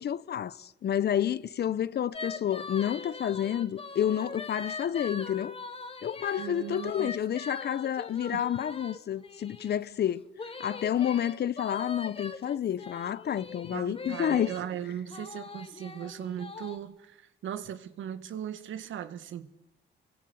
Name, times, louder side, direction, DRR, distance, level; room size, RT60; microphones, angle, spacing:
voice 1, 0.0-5.6 6.0-10.3 10.6-14.5, left 10 dB, 55° left, 0.9 m, -29 dB
sound 1, 2.1-9.8 10.4-14.6 15.1-16.8, left 3 dB, 30° left, 2.5 m, -42 dB
voice 2, 6.4-7.1 8.3-8.5 13.7-19.5, right 10 dB, 75° right, 1.8 m, -38 dB
25.5 x 23.0 x 8.1 m
cardioid pair, 90°, 20 cm